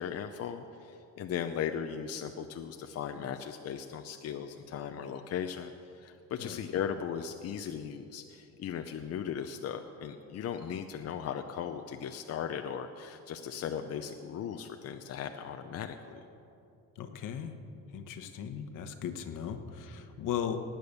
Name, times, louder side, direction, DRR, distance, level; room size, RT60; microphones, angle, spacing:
voice 1, 0.0-16.2, left 8 dB, 50° left, 6 dB, 0.7 m, -37 dB
voice 2, 17.0-17.5 17.9-20.6, left 8 dB, 70° left, 8 dB, 1.2 m, -37 dB
18.5 x 9.0 x 6.7 m, 2.7 s
cardioid pair, 150°, 32 cm